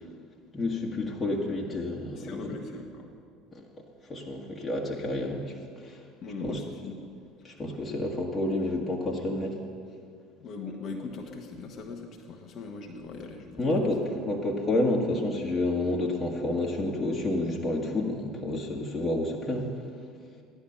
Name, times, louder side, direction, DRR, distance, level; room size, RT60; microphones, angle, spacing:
voice 1, 0.5-2.5 3.5-3.6 4.1-6.0 6.4-6.6 7.4-9.6 13.6-19.7, left 2 dB, 25° left, -2 dB, 1.7 m, -29 dB
voice 2, 2.1-3.2 6.2-7.0 7.6-7.8 10.4-13.9, left 3 dB, 45° left, 2 dB, 1.3 m, -40 dB
14.0 x 10.5 x 5.7 m, 2.3 s
figure-of-eight pair, 65°, 0 cm